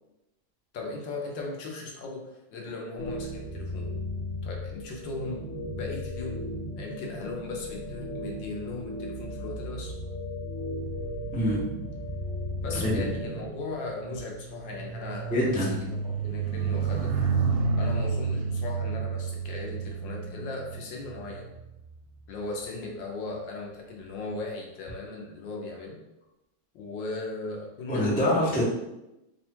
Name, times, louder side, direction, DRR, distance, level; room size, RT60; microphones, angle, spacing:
voice 1, 0.7-3.9 4.4-5.4 5.7-6.4 6.8-9.9 12.6-17.1 17.8-21.5 22.3-26.0 26.7-28.2, left 3 dB, 70° left, 0 dB, 1.3 m, -37 dB
sound 1, 3.0-13.5, left 1 dB, 50° left, 1.2 m, -36 dB
sound 2, 10.7-22.4 23.1-23.4, right 5 dB, 80° right, 1.3 m, -32 dB
voice 2, 15.3-15.8 27.9-28.6, left 1 dB, 15° left, -6 dB, 0.3 m, -25 dB
3.5 x 2.3 x 4.3 m, 0.91 s
omnidirectional pair, 2.2 m